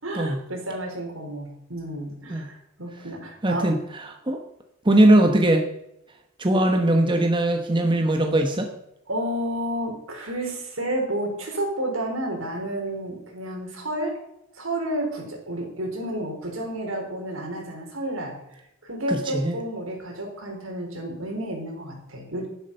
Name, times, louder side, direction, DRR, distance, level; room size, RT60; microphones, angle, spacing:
voice 1, 0.0-3.7 9.1-14.2 14.5-22.5, right 1 dB, 70° right, 1 dB, 4.5 m, -31 dB
voice 2, 3.4-4.4 4.8-5.7 6.4-8.7 19.1-19.5, right 1 dB, 25° right, 4 dB, 1.0 m, -20 dB
11.0 x 11.0 x 5.5 m, 0.84 s
head